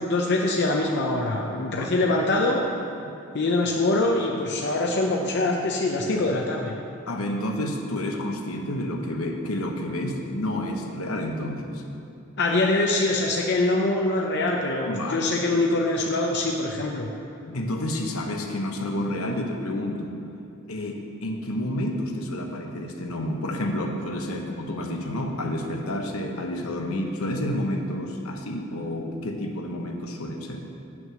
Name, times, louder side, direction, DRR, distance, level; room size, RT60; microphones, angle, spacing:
voice 1, 0.0-2.7 3.3-6.7 12.4-17.1, left 2 dB, 50° left, 0 dB, 0.6 m, -24 dB
voice 2, 7.1-11.8 14.9-15.3 17.4-20.1 20.7-30.6, left 1 dB, 75° left, 3 dB, 1.0 m, -30 dB
9.2 x 6.0 x 6.4 m, 2.6 s
head